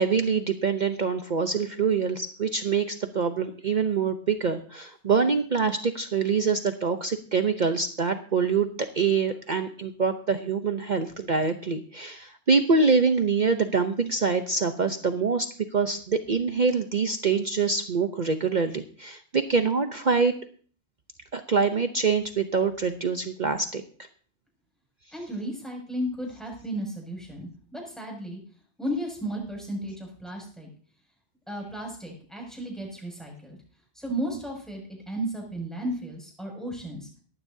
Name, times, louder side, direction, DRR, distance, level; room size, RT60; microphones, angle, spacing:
voice 1, 0.0-15.5 15.7-20.3 21.3-23.8, right 5 dB, 45° right, 7 dB, 0.8 m, -25 dB
voice 2, 25.1-28.4 28.8-30.7 31.5-33.6 33.9-34.8 35.1-37.1, right 1 dB, ahead, -1 dB, 6.6 m, -34 dB
18.5 x 13.0 x 2.7 m, 0.44 s
omnidirectional pair, 1.2 m